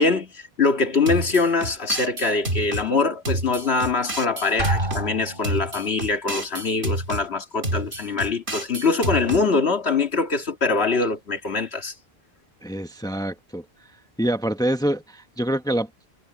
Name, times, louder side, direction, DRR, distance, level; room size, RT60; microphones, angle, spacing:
voice 1, 0.0-11.9, left 4 dB, 85° left, 2.2 m, -23 dB
sound 1, 1.1-2.9 3.2-5.1 5.4-7.2 7.6-9.4, right 1 dB, 90° right, 3.7 m, -29 dB
Drum, 4.6-5.8, right 1 dB, 60° right, 4.4 m, -28 dB
voice 2, 12.6-13.6 14.2-16.1, right 1 dB, 5° left, 1.1 m, -26 dB
omnidirectional pair, 1.0 m